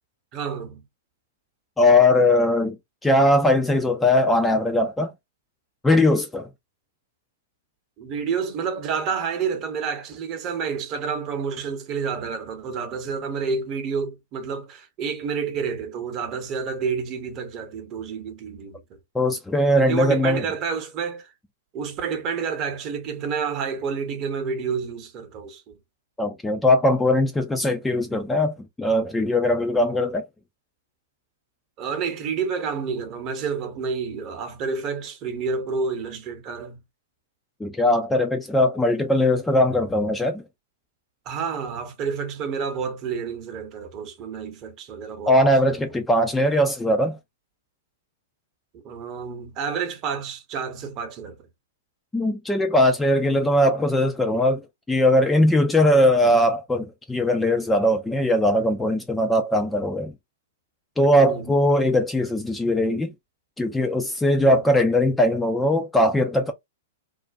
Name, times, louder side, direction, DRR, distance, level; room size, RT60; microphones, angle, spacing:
voice 1, 0.3-0.8 8.0-18.8 19.8-21.3 21.7-25.7 31.8-36.8 41.3-45.5 48.8-51.5 61.2-61.5 64.4-64.6, right 5 dB, 35° right, 0.8 m, -29 dB
voice 2, 1.8-2.8 3.0-5.1 5.8-6.5 19.1-20.4 26.2-30.3 37.6-40.4 45.3-47.2 52.1-60.1 61.0-63.1 63.6-66.5, left 1 dB, 10° left, 0.4 m, -20 dB
2.4 x 2.1 x 2.4 m
hypercardioid pair, 110°, 0 cm